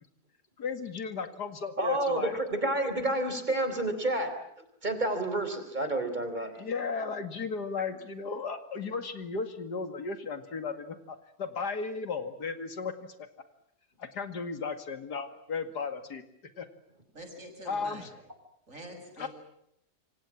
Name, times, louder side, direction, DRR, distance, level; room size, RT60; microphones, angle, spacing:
voice 1, 0.6-2.4 6.4-12.9 14.0-16.2 16.6-16.7 17.7-18.1 19.2-19.3, left 5 dB, 85° left, 9 dB, 2.7 m, -35 dB
voice 2, 1.8-4.3 4.8-6.6, right 1 dB, 25° right, 8 dB, 4.2 m, -29 dB
voice 3, 17.1-18.1 18.7-19.3, right 1 dB, 50° right, 4 dB, 6.9 m, -45 dB
27.5 x 25.0 x 7.4 m, 0.74 s
omnidirectional pair, 1.7 m